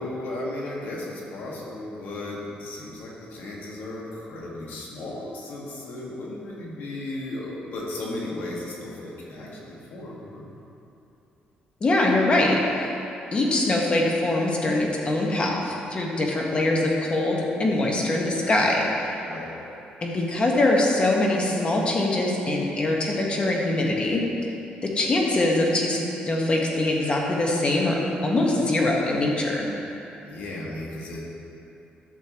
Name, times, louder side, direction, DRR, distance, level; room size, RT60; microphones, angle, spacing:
voice 1, 0.0-10.4 19.2-19.5 30.2-31.3, left 1 dB, 75° left, -4 dB, 1.8 m, -35 dB
voice 2, 11.8-12.9 13.3-19.2 20.0-24.2 24.8-29.7, left 2 dB, 35° left, -1 dB, 1.4 m, -23 dB
12.0 x 6.8 x 3.1 m, 2.9 s
cardioid pair, 110°, 3 cm